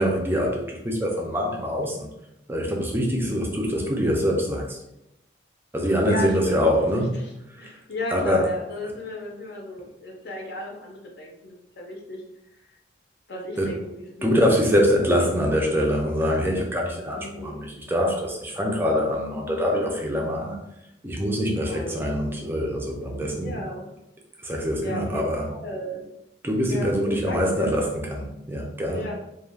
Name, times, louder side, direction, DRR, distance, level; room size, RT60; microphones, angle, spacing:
voice 1, 0.0-2.1 2.5-4.8 5.7-7.1 7.6-7.7 8.1-8.5 13.6-13.7 14.2-20.6 21.0-23.6 24.4-25.5 26.4-29.0, equal, 10° right, 0 dB, 0.4 m, -24 dB
voice 2, 3.2-3.6 6.0-12.2 13.3-14.8 17.1-17.6 21.7-22.0 23.4-23.9 24.8-25.2 25.6-26.0 26.7-27.8 28.9-29.1, left 1 dB, 55° left, -1 dB, 0.6 m, -35 dB
2.3 x 2.2 x 3.3 m, 0.85 s
head